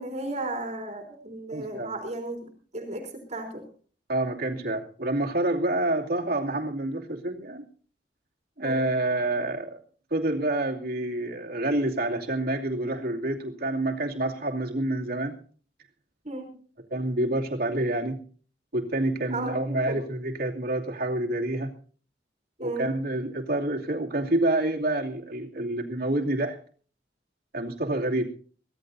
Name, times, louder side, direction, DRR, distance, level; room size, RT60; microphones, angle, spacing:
voice 1, 0.0-3.7 8.6-8.9 16.2-16.5 19.3-20.0 22.6-22.9 28.0-28.1, right 2 dB, 40° right, 3 dB, 3.7 m, -35 dB
voice 2, 1.5-1.9 4.1-7.6 8.6-9.8 10.1-15.4 16.9-18.2 18.7-21.7 22.6-26.6 27.5-28.3, right 1 dB, 60° right, 1 dB, 2.6 m, -28 dB
23.5 x 17.0 x 2.7 m, 0.42 s
head